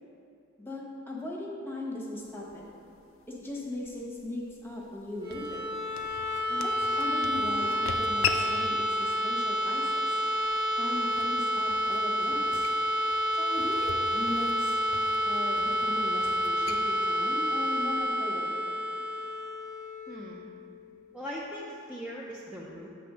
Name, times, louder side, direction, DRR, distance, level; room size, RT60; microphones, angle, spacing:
voice 1, 0.6-2.6 3.3-5.7 6.5-10.2 10.8-12.6 13.3-14.8 15.2-18.6, left 1 dB, 10° left, -4 dB, 1.0 m, -38 dB
sound 1, 2.2-18.3, left 6 dB, 80° left, 0.4 m, -42 dB
sound 2, 5.1-20.9, equal, 25° right, 1.1 m, -29 dB
voice 2, 20.1-20.4 21.1-22.9, equal, 5° right, -6 dB, 0.5 m, -40 dB
7.8 x 3.4 x 6.1 m, 2.8 s
head